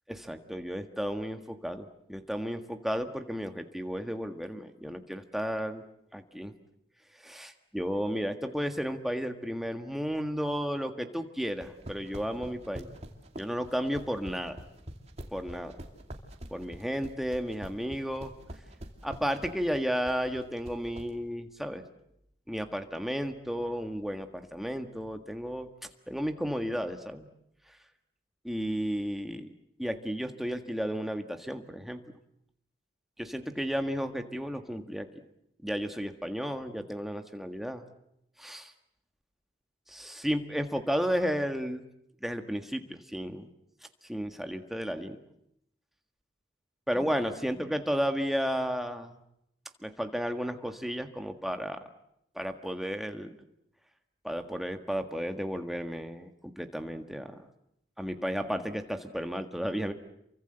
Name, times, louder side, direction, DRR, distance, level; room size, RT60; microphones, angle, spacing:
voice 1, 0.1-5.8 6.1-6.5 7.2-12.9 13.4-14.6 15.3-15.7 16.5-18.3 19.0-21.8 22.5-25.7 26.1-27.3 28.4-29.5 29.8-32.0 33.2-35.1 35.6-37.8 38.4-38.7 39.9-41.8 42.2-43.5 44.0-45.2 46.9-49.2 49.8-51.8 52.3-53.4 54.2-57.4 58.0-59.9, equal, ahead, 6 dB, 1.6 m, -33 dB
sound 1, 11.5-21.1, equal, 35° right, 2.7 m, -44 dB
28.5 x 24.0 x 8.0 m, 0.78 s
head